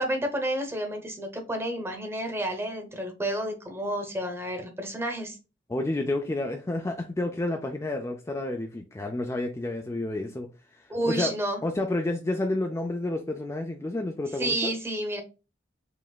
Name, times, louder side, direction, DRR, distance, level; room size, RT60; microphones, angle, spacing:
voice 1, 0.0-5.4 10.9-11.6 14.4-15.2, right 1 dB, 15° right, 0.9 m, -30 dB
voice 2, 5.7-11.3 11.6-14.7, left 2 dB, 15° left, 0.4 m, -30 dB
5.0 x 3.3 x 2.3 m
head